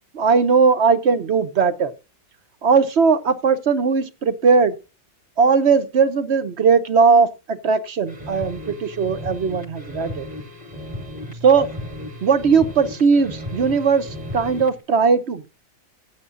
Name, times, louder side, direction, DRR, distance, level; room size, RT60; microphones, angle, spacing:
voice 1, 0.1-1.9 2.6-4.8 5.4-10.3 11.3-11.7 12.2-15.5, right 5 dB, 55° right, 1.0 m, -18 dB
sound 1, 8.0-14.8, left 1 dB, 30° right, 2.1 m, -35 dB
15.5 x 8.1 x 2.5 m
omnidirectional pair, 1.5 m